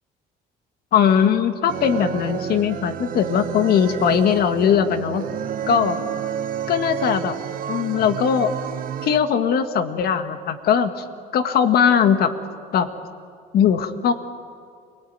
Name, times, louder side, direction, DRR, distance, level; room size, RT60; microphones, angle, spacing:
voice 1, 0.9-5.3 5.7-6.1 6.7-7.4 7.7-8.5 9.0-11.0 11.3-12.3 12.7-12.9 13.5-14.1, left 7 dB, 65° left, 9 dB, 1.7 m, -19 dB
sound 1, 1.7-9.2, right 9 dB, 55° right, 1.1 m, -30 dB
28.0 x 18.0 x 9.4 m, 2.2 s
cardioid pair, 110°, 17 cm